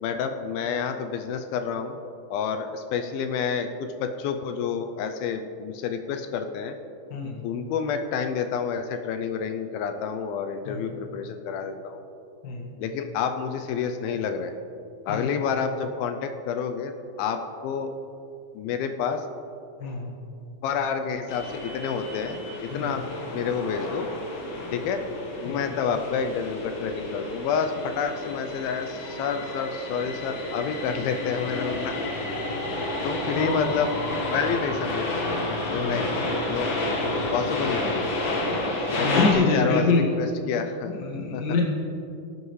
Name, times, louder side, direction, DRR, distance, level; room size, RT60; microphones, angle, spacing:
voice 1, 0.0-2.0 2.3-6.8 7.4-12.0 12.8-14.5 15.1-17.9 18.6-19.3 20.6-23.0 23.3-24.1 24.7-25.0 25.4-32.0 33.0-33.9 34.3-35.2 35.6-36.2 36.5-36.7 37.3-38.1 38.8-41.1 41.3-41.4, left 6 dB, 80° left, 7 dB, 2.4 m, -29 dB
voice 2, 7.1-7.4 10.6-10.9 12.4-12.7 15.1-15.3 19.8-20.1 22.7-23.0 25.4-25.8 33.3-33.5 35.6-36.1 38.7-40.1 40.8-41.6, left 4 dB, 45° left, -2 dB, 1.5 m, -26 dB
sound 1, 21.3-39.3, left 1 dB, 60° left, 1.3 m, -30 dB
19.5 x 8.0 x 3.2 m, 2.7 s
omnidirectional pair, 4.4 m